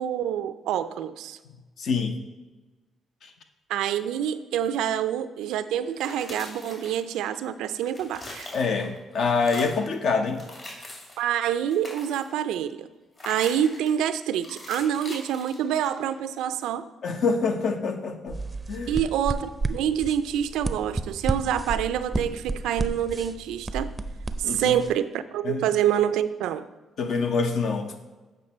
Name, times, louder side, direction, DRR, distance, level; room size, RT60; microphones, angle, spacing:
voice 1, 0.0-1.4 3.7-8.5 11.2-12.9 13.3-16.9 18.9-23.9 24.4-26.7, right 10 dB, 90° right, 12 dB, 0.4 m, -27 dB
voice 2, 1.8-2.2 3.2-3.3 8.5-10.4 17.0-18.4 18.7-19.0 24.4-24.8 25.4-25.6 27.0-27.9, left 4 dB, 65° left, 6 dB, 0.9 m, -26 dB
sound 1, 5.8-7.4 7.7-9.0 9.3-9.9 10.3-11.2 11.6-12.4 13.2-14.0 14.4-16.1, left 1 dB, 45° left, 2.5 m, -42 dB
sound 2, 18.3-24.9, right 3 dB, 20° right, 0.5 m, -32 dB
8.0 x 5.2 x 4.2 m, 1.2 s
cardioid pair, 90°, 0 cm